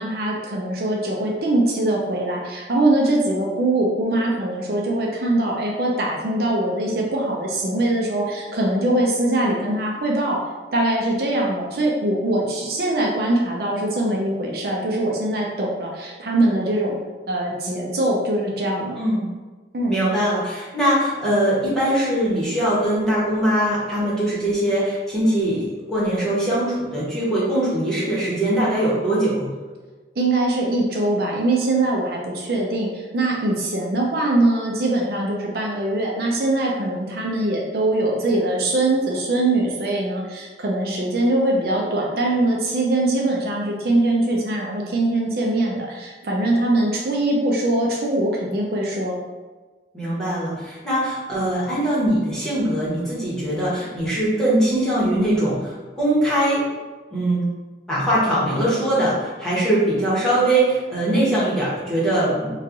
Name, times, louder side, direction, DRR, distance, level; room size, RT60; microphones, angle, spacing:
voice 1, 0.0-10.4 10.7-16.9 17.3-19.0 19.7-20.0 30.2-49.2, right 1 dB, 60° right, -2 dB, 0.5 m, -22 dB
voice 2, 19.9-29.5 49.9-56.7 57.1-57.4 57.9-62.5, right 1 dB, 5° left, -9 dB, 1.0 m, -21 dB
3.1 x 2.3 x 3.7 m, 1.3 s
head